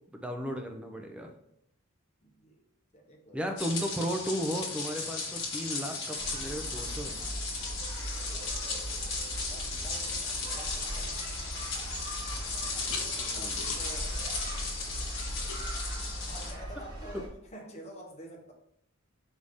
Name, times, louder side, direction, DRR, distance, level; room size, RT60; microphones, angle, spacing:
voice 1, 0.1-1.3 3.3-7.2 13.2-13.6 17.1-17.2, equal, 5° right, 3 dB, 0.5 m, -35 dB
voice 2, 2.2-2.6 2.9-3.5 8.2-9.0 9.3-11.6 13.3-14.4 14.9-15.0 16.2-18.5, right 1 dB, 30° left, 0 dB, 0.7 m, -49 dB
sound 1, 3.6-16.5, left 3 dB, 60° left, 1.2 m, -36 dB
sound 2, 6.2-17.3, right 1 dB, 20° right, 0.8 m, -39 dB
sound 3, 12.4-17.1, left 5 dB, 80° left, 0.8 m, -46 dB
4.9 x 2.7 x 3.5 m, 0.73 s
head